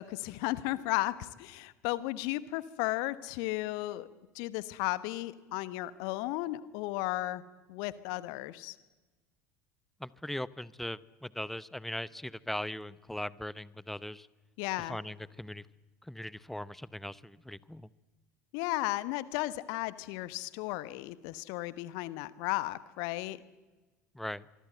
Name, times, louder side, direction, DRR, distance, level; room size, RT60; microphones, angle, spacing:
voice 1, 0.0-4.1 4.3-7.4 7.7-8.8 14.6-15.0 18.5-23.4, left 18 dB, 55° left, 17 dB, 1.1 m, -34 dB
voice 2, 10.0-14.3 14.8-15.7 16.0-17.9 24.1-24.4, left 1 dB, 5° left, 19 dB, 0.8 m, -39 dB
24.5 x 24.0 x 7.9 m, 1.2 s
figure-of-eight pair, 70°, 8 cm